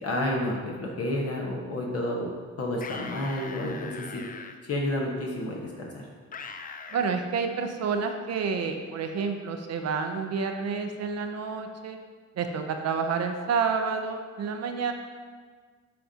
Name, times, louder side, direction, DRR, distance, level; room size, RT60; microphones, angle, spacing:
voice 1, 0.0-2.3 2.6-4.2 4.7-6.0, left 1 dB, 55° left, -2 dB, 1.1 m, -30 dB
sound 1, 2.7-4.5 6.3-7.2, left 5 dB, 30° left, 0.5 m, -41 dB
voice 2, 6.9-12.0 12.3-14.9, right 5 dB, 55° right, 5 dB, 0.6 m, -29 dB
10.0 x 3.8 x 2.8 m, 1.5 s
cardioid pair, 90°, 30 cm